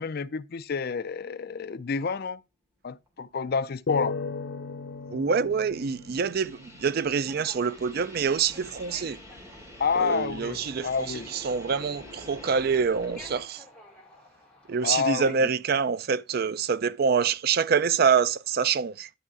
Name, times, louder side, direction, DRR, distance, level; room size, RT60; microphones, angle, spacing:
voice 1, 0.0-2.4 2.8-4.2 9.8-11.3 14.8-15.4, left 5 dB, 50° left, 0.5 m, -29 dB
sound 1, 3.1-3.2 3.7-13.4, left 1 dB, 15° right, 3.0 m, -48 dB
sound 2, 3.9-7.3, left 4 dB, 90° left, 0.9 m, -36 dB
voice 2, 5.1-9.2 10.0-13.6 14.7-19.1, right 6 dB, 50° right, 0.4 m, -26 dB
sound 3, 7.2-15.3, left 2 dB, 5° left, 2.5 m, -53 dB
11.5 x 4.8 x 4.8 m
head